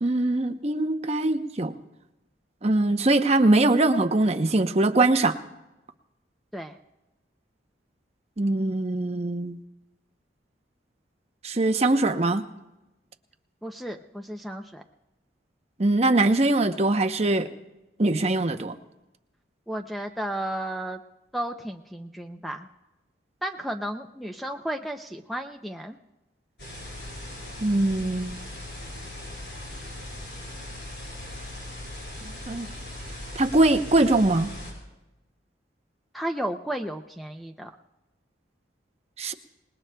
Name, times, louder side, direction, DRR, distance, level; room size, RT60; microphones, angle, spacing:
voice 1, 0.0-1.7 2.6-5.4 8.4-9.6 11.4-12.4 15.8-17.5 18.0-18.8 27.6-28.4 32.5-32.7 33.4-34.5 39.2-39.3, right 2 dB, 35° right, 6 dB, 0.7 m, -22 dB
voice 2, 13.6-14.8 19.7-21.0 21.3-22.7 23.4-26.0 36.1-37.7, right 1 dB, ahead, 5 dB, 0.5 m, -33 dB
sound 1, 26.6-34.7, left 1 dB, 60° left, 6.2 m, -39 dB
27.5 x 19.5 x 2.3 m, 0.99 s
head